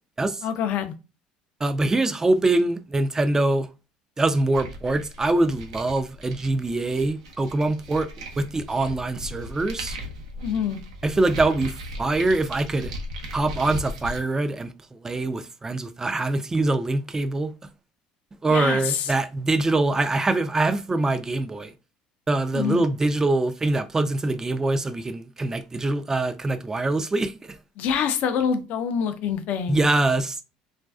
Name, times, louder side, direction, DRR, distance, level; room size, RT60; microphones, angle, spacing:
voice 1, 0.4-0.9 10.4-10.8 18.5-19.1 22.5-22.9 27.8-29.9, left 7 dB, 60° left, 0.4 m, -26 dB
voice 2, 1.6-3.7 4.2-10.0 11.0-12.9 13.3-14.7 15.0-17.5 18.4-21.7 22.3-27.3 29.7-30.4, right 2 dB, 15° right, 0.3 m, -24 dB
sound 1, 4.5-14.2, equal, 85° right, 0.5 m, -37 dB
2.4 x 2.2 x 2.3 m
hypercardioid pair, 75°, 3 cm